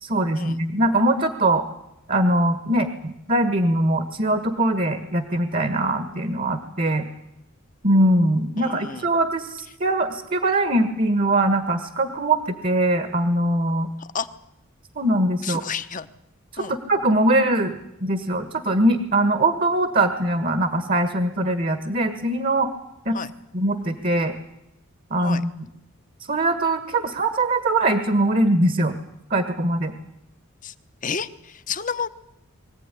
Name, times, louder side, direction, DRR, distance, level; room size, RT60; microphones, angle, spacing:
voice 1, 0.0-1.6 2.1-7.1 7.8-13.9 14.9-15.6 16.5-22.7 23.0-23.2 23.5-24.3 25.1-25.5 26.3-29.0 29.3-29.9, right 1 dB, 40° right, 9 dB, 1.6 m, -22 dB
voice 2, 8.6-9.1 14.0-14.3 15.4-16.1 16.6-16.8 23.1-23.3 25.2-25.4 30.6-30.7 31.0-32.1, left 6 dB, 40° left, 11 dB, 1.0 m, -31 dB
23.5 x 15.5 x 10.0 m, 0.84 s
head